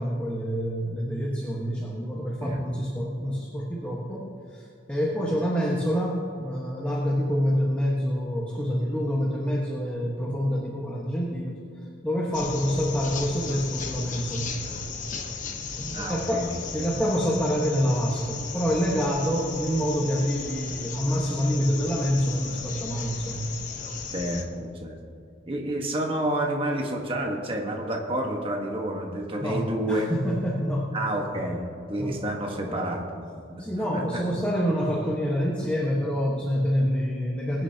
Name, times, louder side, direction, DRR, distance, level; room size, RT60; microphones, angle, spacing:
voice 1, 0.0-11.6 12.0-14.5 15.7-16.5 16.7-23.5 29.4-30.9 31.3-31.4 32.0-32.2 32.7-32.8 33.6-37.6, equal, 5° left, -4 dB, 1.3 m, -27 dB
sound 1, 12.3-24.4, left 5 dB, 40° left, 1.0 m, -36 dB
voice 2, 15.9-16.9 24.1-25.0 25.5-30.1 30.9-31.6 31.9-33.2 33.5-33.6 33.9-34.2, right 1 dB, 25° right, 1 dB, 1.3 m, -29 dB
22.5 x 9.9 x 2.8 m, 2.4 s
head